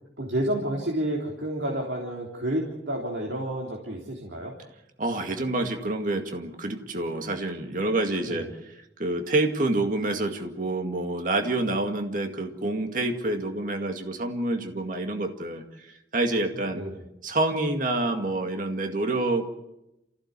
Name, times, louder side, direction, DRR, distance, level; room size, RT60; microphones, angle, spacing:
voice 1, 0.2-4.5 8.3-8.5 16.7-17.0, right 1 dB, 80° right, 0 dB, 3.5 m, -30 dB
voice 2, 5.0-8.5 9.0-16.8 17.2-19.5, right 2 dB, 50° right, 4 dB, 2.1 m, -27 dB
28.5 x 16.0 x 8.3 m, 0.89 s
head